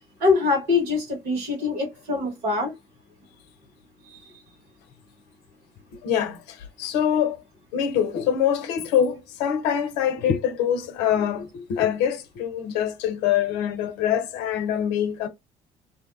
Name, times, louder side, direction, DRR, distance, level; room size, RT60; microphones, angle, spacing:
voice 1, 0.2-2.7 4.1-4.2, left 4 dB, 60° right, 1.5 m, -23 dB
voice 2, 6.0-7.4 7.7-15.3, left 9 dB, 70° left, 0.6 m, -24 dB
2.7 x 2.2 x 2.4 m
figure-of-eight pair, 50°, 18 cm